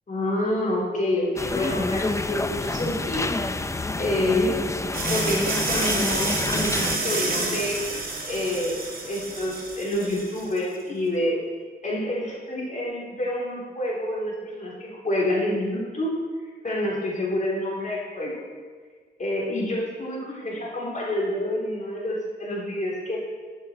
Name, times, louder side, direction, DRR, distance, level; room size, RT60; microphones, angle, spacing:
voice 1, 0.1-3.3 4.0-4.7 5.1-7.8 8.3-8.8 9.1-11.4 11.8-16.2 16.6-18.4 19.2-23.2, left 1 dB, 45° left, -4 dB, 3.6 m, -27 dB
sound 1, 1.4-7.0, left 2 dB, 15° left, 0.5 m, -28 dB
sound 2, 4.9-10.6, right 3 dB, 55° right, 2.3 m, -29 dB
12.5 x 11.0 x 4.4 m, 1.5 s
wide cardioid pair, 95°, 17 cm